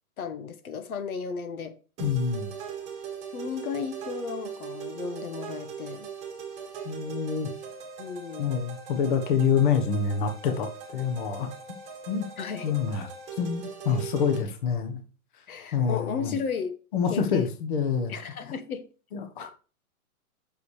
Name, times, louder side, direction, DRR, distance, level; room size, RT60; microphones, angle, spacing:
voice 1, 0.2-1.7 3.3-6.1 8.0-8.6 12.4-12.8 15.5-16.7 17.1-17.4 18.1-18.8, left 6 dB, 70° left, 1.2 m, -34 dB
voice 2, 2.0-2.5 6.8-7.5 8.4-11.5 12.1-12.2 12.6-13.1 13.4-15.0 15.7-16.4 16.9-18.1 19.1-19.5, left 6 dB, 35° left, 1.2 m, -26 dB
sound 1, 2.0-14.4, right 6 dB, 15° right, 1.5 m, -40 dB
8.2 x 6.7 x 3.2 m
hypercardioid pair, 170°, 44 cm